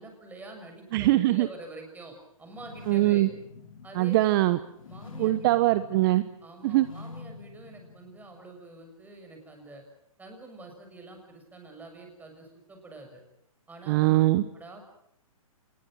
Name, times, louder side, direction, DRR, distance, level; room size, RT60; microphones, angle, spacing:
voice 1, 0.0-3.3 3.8-4.2 4.9-5.5 6.4-9.8 10.2-13.2 13.7-14.2 14.5-14.8, right 2 dB, 10° right, 4 dB, 6.9 m, -46 dB
voice 2, 0.9-1.5 2.9-3.3 3.9-4.6 5.2-6.2 6.6-6.9 13.9-14.4, right 17 dB, 40° right, 13 dB, 1.1 m, -22 dB
sound 1, 2.5-8.5, left 4 dB, 65° left, 3.5 m, -46 dB
26.5 x 21.0 x 7.8 m, 0.73 s
hypercardioid pair, 130°, 18 cm